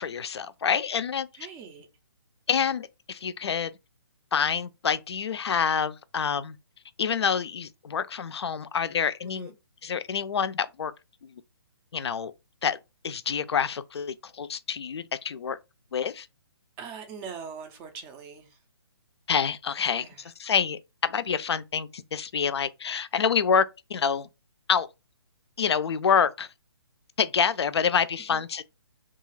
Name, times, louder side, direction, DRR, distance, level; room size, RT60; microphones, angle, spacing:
voice 1, 0.0-1.3 2.5-3.7 4.3-6.6 7.0-9.5 9.8-10.9 11.9-12.3 12.6-12.8 13.0-15.6 15.9-16.3 19.3-24.3 24.7-24.9 25.6-26.5 27.2-28.6, left 7 dB, 70° left, 0.4 m, -27 dB
voice 2, 1.4-1.9 9.2-9.5 16.8-18.6 19.9-20.3 28.3-28.4, right 6 dB, 15° right, 0.3 m, -42 dB
2.4 x 2.3 x 3.1 m
hypercardioid pair, 150°, 14 cm